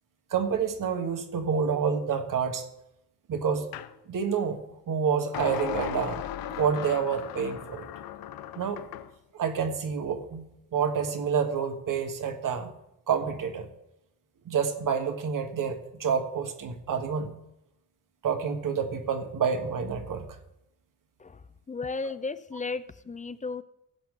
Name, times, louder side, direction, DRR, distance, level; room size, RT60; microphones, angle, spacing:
voice 1, 0.3-2.7 3.3-3.7 4.1-4.6 4.9-6.2 6.6-7.9 8.5-8.8 9.3-10.5 10.7-12.7 13.1-13.7 14.4-17.3 18.2-20.3, right 6 dB, 65° right, 6 dB, 1.5 m, -28 dB
sound 1, 3.7-3.9 5.3-9.1, left 10 dB, 90° left, 0.7 m, -36 dB
voice 2, 21.7-23.6, left 4 dB, 20° left, 15 dB, 0.5 m, -34 dB
16.0 x 7.7 x 3.8 m, 0.85 s
cardioid pair, 105°, 34 cm